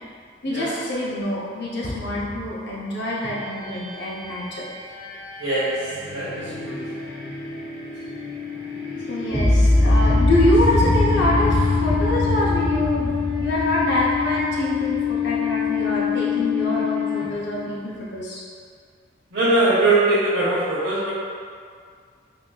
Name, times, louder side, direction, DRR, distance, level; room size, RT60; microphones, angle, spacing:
voice 1, 0.4-4.6 8.9-18.4, left 1 dB, 60° left, -6 dB, 0.6 m, -25 dB
sound 1, 3.2-17.7, left 9 dB, 90° left, 1.3 m, -28 dB
voice 2, 5.4-5.7 6.1-6.8 19.3-21.1, right 2 dB, 75° right, -12 dB, 0.9 m, -21 dB
sound 2, 9.3-15.4, left 1 dB, ahead, 0.3 m, -21 dB
3.8 x 2.5 x 2.3 m, 2.1 s
head